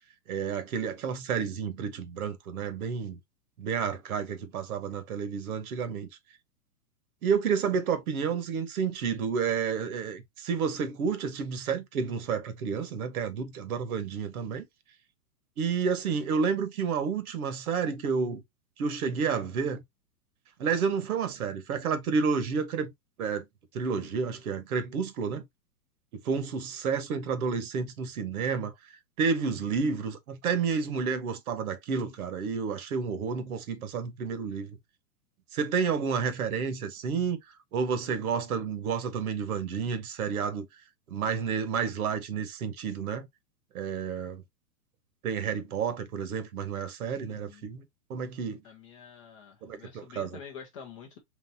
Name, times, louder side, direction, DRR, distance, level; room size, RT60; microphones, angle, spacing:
voice 1, 0.3-3.2 3.6-6.1 7.2-14.7 15.6-18.4 18.8-19.8 20.6-22.9 23.2-23.4 23.7-25.4 26.2-28.7 29.2-34.8 35.5-37.4 37.7-40.7 41.1-43.3 43.7-44.4 45.2-47.8 48.1-48.6 49.6-50.4, right 6 dB, 60° right, 1.2 m, -30 dB
voice 2, 47.3-47.7 48.6-51.2, left 6 dB, 20° left, 0.5 m, -47 dB
4.0 x 3.2 x 2.8 m
hypercardioid pair, 150°, 48 cm